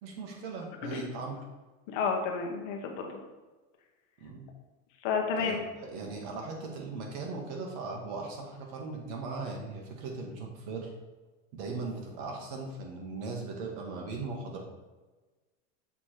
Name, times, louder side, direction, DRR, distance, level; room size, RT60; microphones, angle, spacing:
voice 1, 0.0-1.4 4.2-4.5 5.4-5.6 5.8-10.9 11.5-14.6, right 3 dB, 45° right, 0 dB, 1.4 m, -38 dB
voice 2, 1.9-3.2 5.0-5.6, left 5 dB, 40° left, 2 dB, 1.0 m, -31 dB
7.2 x 3.2 x 4.3 m, 1.2 s
supercardioid pair, 170°, 39 cm